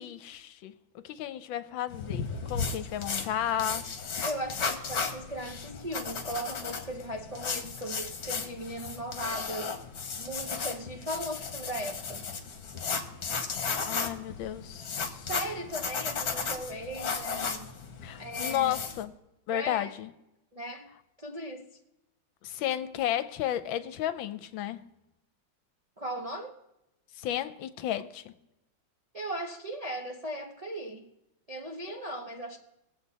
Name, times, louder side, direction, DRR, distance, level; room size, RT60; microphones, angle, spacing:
voice 1, 0.0-3.9 13.9-15.3 18.0-19.1 19.5-20.1 22.4-24.8 27.2-28.3, left 11 dB, 80° left, 1.4 m, -33 dB
sound 1, 1.9-19.0, left 5 dB, 50° left, 1.6 m, -35 dB
voice 2, 4.2-9.8 10.2-12.2 15.3-17.7 18.2-18.8 19.5-19.9 20.5-20.9 21.2-21.7 26.0-26.6 29.1-31.1 31.5-32.6, right 1 dB, 45° right, 0.4 m, -37 dB
21.5 x 7.9 x 4.1 m
omnidirectional pair, 2.2 m